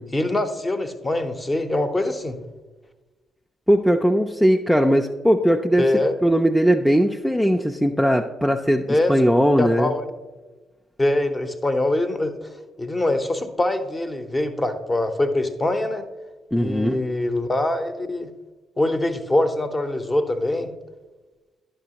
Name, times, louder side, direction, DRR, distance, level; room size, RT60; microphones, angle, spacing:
voice 1, 0.1-2.4 5.8-6.1 8.9-9.1 9.6-10.1 11.0-12.4 12.8-16.1 16.5-18.3 18.8-20.7, left 1 dB, 25° left, 8 dB, 0.8 m, -23 dB
voice 2, 3.7-5.9 6.2-8.8 9.1-9.9 16.5-17.0, equal, ahead, 3 dB, 0.4 m, -19 dB
10.5 x 5.5 x 2.9 m, 1.2 s
hypercardioid pair, 45°, 0 cm